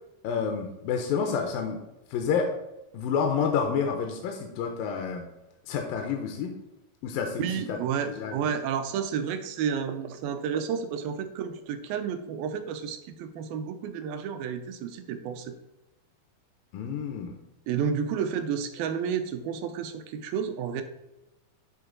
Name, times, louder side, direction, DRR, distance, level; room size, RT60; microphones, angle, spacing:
voice 1, 0.2-1.8 2.1-2.5 2.9-5.2 5.7-6.5 7.0-7.8 8.2-8.4 16.7-17.4, left 6 dB, 80° left, 3 dB, 2.4 m, -29 dB
voice 2, 7.4-15.5 17.7-20.8, right 7 dB, 80° right, 8 dB, 2.4 m, -31 dB
10.5 x 3.8 x 3.8 m, 0.96 s
omnidirectional pair, 4.1 m